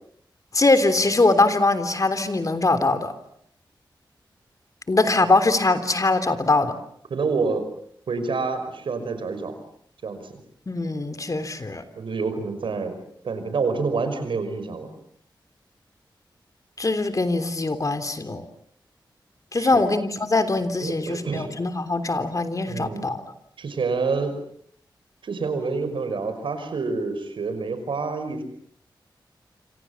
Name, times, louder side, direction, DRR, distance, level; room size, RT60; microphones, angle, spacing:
voice 1, 0.5-3.1 4.9-6.7 10.7-11.8 16.8-18.5 19.5-23.2, left 2 dB, 40° left, 10 dB, 3.4 m, -22 dB
voice 2, 7.1-7.7 8.1-9.5 10.0-10.4 12.0-12.9 13.2-14.9 19.6-19.8 20.8-21.5 22.7-23.1 23.6-24.3 25.2-28.4, right 4 dB, 90° right, 9 dB, 5.6 m, -27 dB
27.5 x 27.0 x 7.3 m, 0.65 s
cardioid pair, 65°, 8 cm